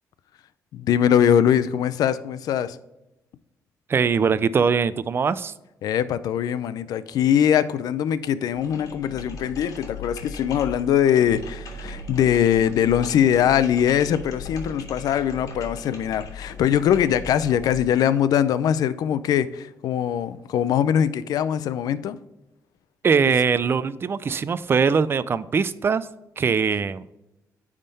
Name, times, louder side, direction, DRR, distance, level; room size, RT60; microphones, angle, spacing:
voice 1, 0.7-2.8 5.8-22.2, left 9 dB, 80° left, 15 dB, 0.4 m, -22 dB
voice 2, 3.9-5.5 23.0-26.1 26.4-27.0, right 5 dB, 40° right, 16 dB, 0.4 m, -21 dB
sound 1, 8.5-17.8, left 2 dB, 65° left, 2.1 m, -38 dB
9.7 x 3.6 x 5.4 m, 0.93 s
cardioid pair, 100°, 6 cm